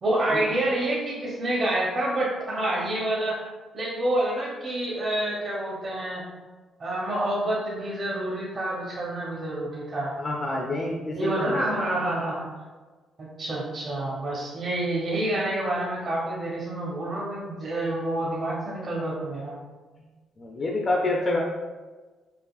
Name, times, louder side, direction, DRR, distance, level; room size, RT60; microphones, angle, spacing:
voice 1, 0.0-3.4 3.7-6.2 6.8-10.2 11.1-12.5 13.2-19.5, right 1 dB, 45° right, -5 dB, 0.8 m, -28 dB
voice 2, 10.2-11.7 20.0-20.1 20.4-21.4, left 2 dB, 40° left, -1 dB, 0.5 m, -28 dB
4.8 x 2.4 x 2.4 m, 1.3 s
cardioid pair, 90°, 0 cm